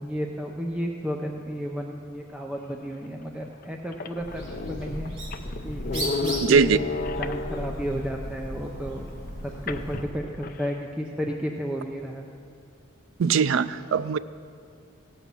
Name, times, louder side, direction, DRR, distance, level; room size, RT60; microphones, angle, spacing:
voice 1, 0.0-5.1 5.6-6.9 7.2-9.1 9.4-12.3, equal, 5° right, 0 dB, 0.5 m, -32 dB
sound 1, 3.0-3.1 3.6-3.7 3.9-8.0 9.7-10.8, left 3 dB, 45° left, 0.5 m, -33 dB
Bird, 4.1-10.1, equal, 35° right, 3.0 m, -36 dB
voice 2, 6.4-6.8 13.2-14.2, right 6 dB, 70° right, 15 dB, 0.4 m, -21 dB
16.5 x 5.6 x 7.4 m, 2.3 s
head